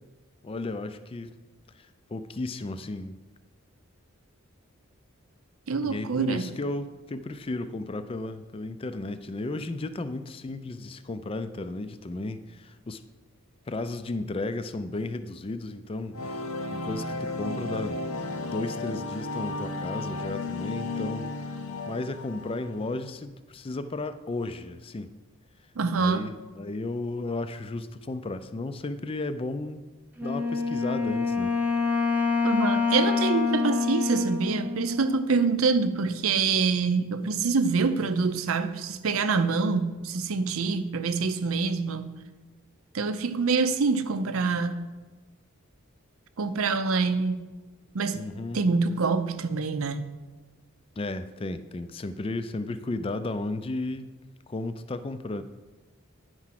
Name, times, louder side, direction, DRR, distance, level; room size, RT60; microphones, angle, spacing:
voice 1, 0.4-1.3 1.7-3.2 5.8-13.0 13.7-16.4 16.7-18.0 18.5-21.3 21.9-25.1 26.0-29.9 30.2-31.5 48.1-48.6 51.0-54.1 54.5-55.4, left 2 dB, 25° left, 0.4 m, -34 dB
voice 2, 5.7-6.5 25.8-26.3 32.4-42.2 42.9-44.9 46.4-47.5 47.9-48.3 48.5-50.1, right 4 dB, 80° right, 0.6 m, -26 dB
sound 1, 16.1-23.0, left 2 dB, 90° left, 0.7 m, -34 dB
Wind instrument woodwind instrument, 30.2-35.6, left 4 dB, 10° right, 0.7 m, -27 dB
9.7 x 4.7 x 5.8 m
head